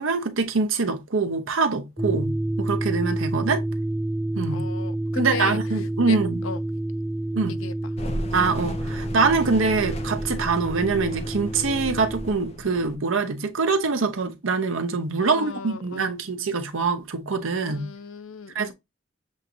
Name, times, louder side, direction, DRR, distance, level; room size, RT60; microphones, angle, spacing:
voice 1, 0.0-3.6 4.3-4.7 5.1-6.4 7.3-7.6 8.3-17.9 18.5-18.7, right 4 dB, 85° right, 0.8 m, -24 dB
sound 1, 2.0-12.3, right 1 dB, 5° right, 0.4 m, -29 dB
voice 2, 4.5-5.6 6.0-6.2 6.4-6.6 7.6-7.7 15.2-16.2 17.6-18.7, left 5 dB, 90° left, 0.6 m, -35 dB
sound 2, 8.0-13.0, left 1 dB, 30° left, 0.7 m, -35 dB
7.3 x 2.6 x 2.7 m
head